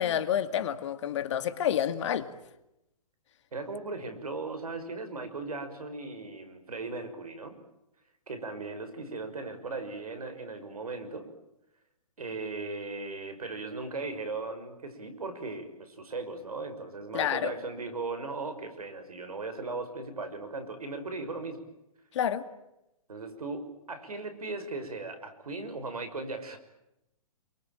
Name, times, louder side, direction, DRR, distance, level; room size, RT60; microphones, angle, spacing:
voice 1, 0.0-2.3 17.1-17.5 22.1-22.4, left 9 dB, 50° left, 10 dB, 2.3 m, -29 dB
voice 2, 3.5-7.6 8.3-11.3 12.2-21.7 23.1-26.6, right 3 dB, 75° right, 9 dB, 6.0 m, -37 dB
28.0 x 23.5 x 9.0 m, 0.87 s
figure-of-eight pair, 125°, 19 cm